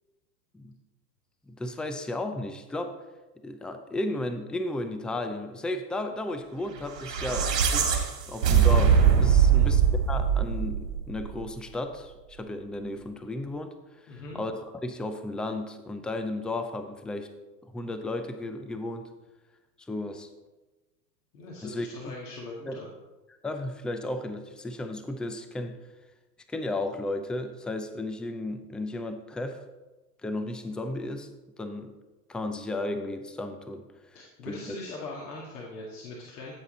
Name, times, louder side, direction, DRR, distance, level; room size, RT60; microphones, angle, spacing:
voice 1, 1.5-3.0 3.4-8.0 8.3-9.8 10.1-13.7 14.0-17.3 17.6-19.1 19.8-20.3 21.6-22.1 22.6-22.8 23.4-25.8 26.5-29.6 30.2-31.3 31.6-31.9 32.3-33.9 34.5-34.8, left 2 dB, ahead, 8 dB, 0.4 m, -34 dB
sound 1, 6.9-11.3, right 7 dB, 80° right, 2.5 m, -22 dB
voice 2, 14.1-14.4 21.3-22.9 34.1-36.5, left 2 dB, 70° left, -3 dB, 2.2 m, -41 dB
14.5 x 7.9 x 3.9 m, 1.2 s
hypercardioid pair, 95°, 48 cm